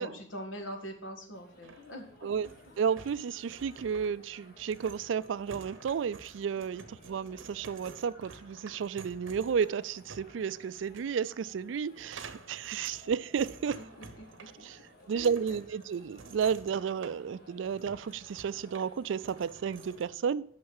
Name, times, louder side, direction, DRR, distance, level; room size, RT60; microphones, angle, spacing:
voice 1, 0.0-2.3 13.8-14.7 15.1-15.6, equal, 80° left, 1.8 m, -43 dB
sound 1, 1.3-20.1, left 1 dB, 55° left, 1.6 m, -58 dB
sound 2, 1.6-20.1, right 4 dB, 85° right, 0.8 m, -52 dB
voice 2, 2.8-13.8 14.6-14.8 15.1-20.4, right 7 dB, 70° right, 0.3 m, -32 dB
6.4 x 5.8 x 7.1 m
head